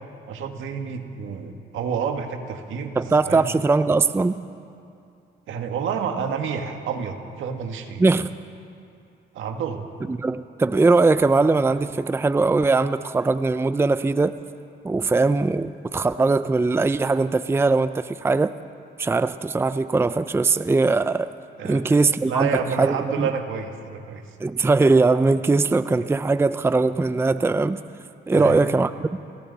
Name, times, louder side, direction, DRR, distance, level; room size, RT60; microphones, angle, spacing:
voice 1, 0.3-3.5 5.5-8.0 9.3-9.9 21.6-22.0 22.3-24.2 28.3-28.6, right 6 dB, 80° right, 5 dB, 1.9 m, -29 dB
voice 2, 3.0-4.3 8.0-8.3 10.1-14.3 14.8-18.5 19.0-21.3 21.6-23.3 24.4-27.8 28.3-29.1, right 3 dB, 10° right, 13 dB, 0.5 m, -20 dB
29.5 x 21.0 x 4.1 m, 2.5 s
cardioid pair, 90°, 20 cm